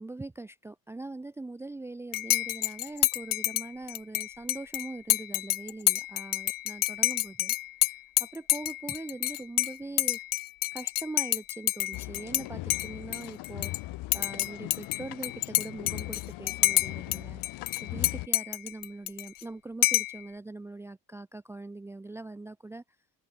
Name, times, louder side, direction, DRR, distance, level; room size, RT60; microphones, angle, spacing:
voice 1, 0.0-7.5 7.9-10.2 10.7-13.7 14.1-17.4 17.8-22.8, right 2 dB, 5° right, 0.5 m, -42 dB
Dishes pots and pans / Cutlery silverware / Chink clink, 2.1-12.4 12.7-13.8 14.1-17.2 17.4-19.4 19.8-20.2, left 18 dB, 60° left, 0.6 m, -28 dB
sound 1, 11.9-18.3, left 19 dB, 85° left, 3.1 m, -40 dB
cardioid pair, 155°, 39 cm